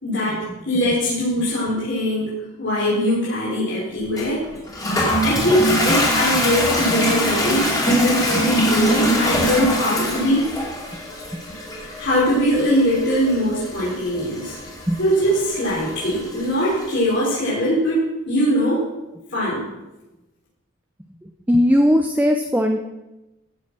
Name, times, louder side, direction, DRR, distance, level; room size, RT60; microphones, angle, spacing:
voice 1, 0.0-4.5 5.2-10.5 11.8-14.5 15.0-18.8 19.3-19.7, equal, 60° left, -9 dB, 4.6 m, -21 dB
Toilet flush, 4.2-16.9, equal, 15° left, 2.6 m, -23 dB
voice 2, 21.5-22.8, equal, 10° right, 4 dB, 0.6 m, -17 dB
14.5 x 7.2 x 6.2 m, 1.0 s
head